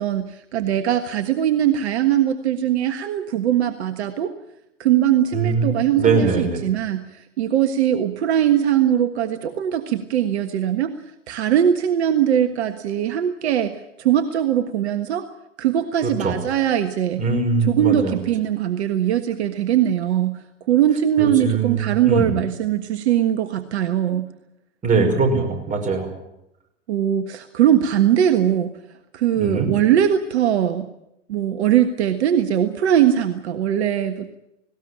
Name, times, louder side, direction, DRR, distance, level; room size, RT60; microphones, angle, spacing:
voice 1, 0.0-4.3 4.8-10.9 11.3-15.3 15.6-17.2 17.7-20.4 20.7-24.3 26.9-28.8 29.1-30.9 31.3-34.3, right 10 dB, 60° right, 8 dB, 1.5 m, -20 dB
voice 2, 5.3-6.6 16.0-16.4 17.2-18.2 21.2-22.4 24.8-26.1 29.4-29.7, right 4 dB, 20° right, 3 dB, 5.7 m, -22 dB
19.5 x 18.0 x 10.0 m, 0.85 s
figure-of-eight pair, 100°, 37 cm